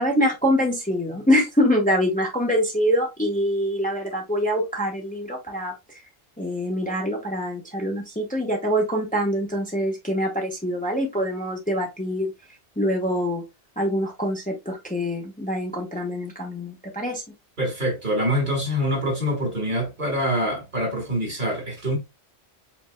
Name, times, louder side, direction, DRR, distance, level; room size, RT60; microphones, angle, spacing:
voice 1, 0.0-6.0 6.4-12.3 12.8-13.4 13.8-17.2, equal, 10° left, 1.1 m, -24 dB
voice 2, 17.6-22.0, equal, 45° right, 1.9 m, -25 dB
5.3 x 4.5 x 2.2 m
omnidirectional pair, 1.2 m